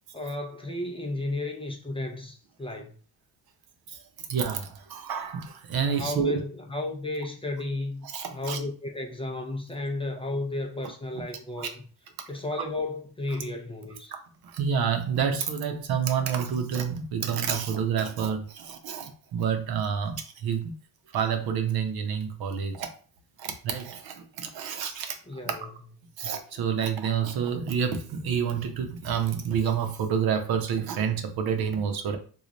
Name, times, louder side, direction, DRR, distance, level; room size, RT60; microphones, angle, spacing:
voice 1, 0.1-3.0 5.8-11.8 12.3-14.1 25.3-25.7 26.0-26.1, left 2 dB, 15° left, 0.4 m, -33 dB
voice 2, 4.3-6.4 8.0-8.6 11.6-11.7 14.4-20.7 21.1-22.9 23.4-25.1 26.2-32.2, right 7 dB, 70° right, 0.7 m, -28 dB
3.2 x 2.4 x 3.8 m
cardioid pair, 130°, 38 cm